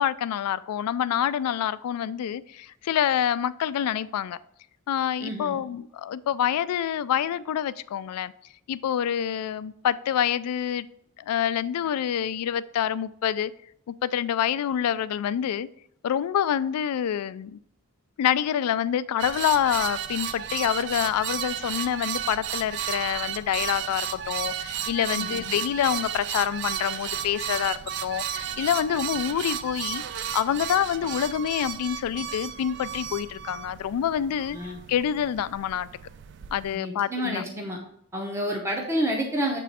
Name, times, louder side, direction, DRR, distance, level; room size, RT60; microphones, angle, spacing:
voice 1, 0.0-4.4 4.9-8.3 8.7-10.9 11.2-13.5 13.9-15.7 16.0-17.6 18.2-34.6 34.9-35.9 36.5-37.4, left 9 dB, 80° left, 16 dB, 0.3 m, -27 dB
voice 2, 5.2-5.6 25.1-25.4 34.5-34.8 36.7-37.8 38.1-39.6, equal, 10° right, 0 dB, 0.7 m, -29 dB
sound 1, 19.2-36.8, right 9 dB, 50° right, 0.3 m, -33 dB
7.5 x 3.0 x 4.2 m, 0.70 s
head